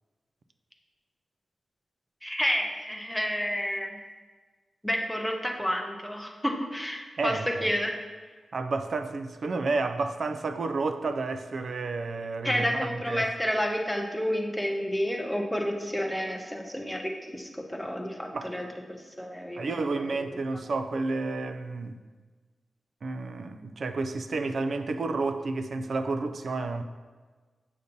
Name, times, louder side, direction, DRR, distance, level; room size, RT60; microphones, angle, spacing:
voice 1, 2.2-4.0 4.8-8.0 12.4-18.7 19.2-20.2, equal, ahead, 1 dB, 0.5 m, -30 dB
voice 2, 7.2-7.7 8.5-13.3 18.3-18.6 19.6-22.0 23.0-26.8, right 3 dB, 55° right, 9 dB, 0.3 m, -31 dB
6.7 x 2.8 x 5.1 m, 1.4 s
wide cardioid pair, 175°, 0 cm